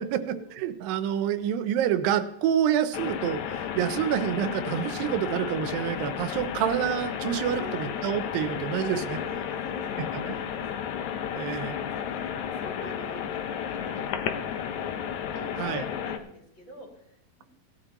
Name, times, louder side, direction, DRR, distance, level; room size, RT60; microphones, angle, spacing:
voice 1, 0.6-9.2 10.3-10.4 11.3-11.8 15.6-15.8, right 10 dB, 85° right, 11 dB, 2.4 m, -27 dB
sound 1, 2.9-16.2, left 8 dB, 75° left, 1.8 m, -33 dB
voice 2, 7.5-7.9 8.8-15.0 15.3-17.4, equal, 35° left, -2 dB, 2.8 m, -46 dB
17.5 x 11.0 x 2.9 m, 0.75 s
omnidirectional pair, 4.0 m